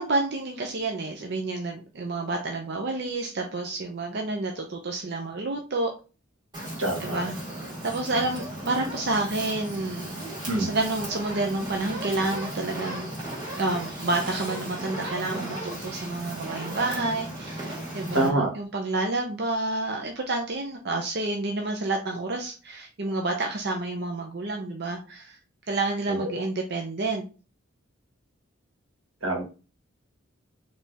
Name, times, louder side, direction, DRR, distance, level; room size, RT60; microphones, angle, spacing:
voice 1, 0.0-5.9 7.0-7.4 7.8-10.1 10.6-13.1 13.6-25.4 25.7-27.2, right 2 dB, 50° right, 2 dB, 0.6 m, -29 dB
Fire, 6.5-18.3, right 1 dB, 20° right, 1.9 m, -36 dB
voice 2, 6.8-7.2 10.5-10.7 18.1-18.5 26.2-26.3 29.2-29.4, right 2 dB, 85° right, -1 dB, 1.7 m, -25 dB
4.1 x 3.4 x 3.5 m, 0.33 s
head